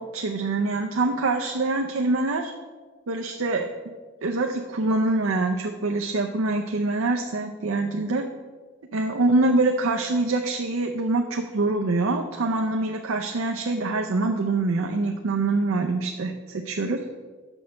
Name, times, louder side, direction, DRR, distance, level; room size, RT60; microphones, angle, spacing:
voice 1, 0.0-2.5 3.1-3.7 4.2-8.2 8.9-17.0, right 2 dB, 85° right, 3 dB, 0.6 m, -25 dB
6.2 x 5.8 x 6.3 m, 1.4 s
head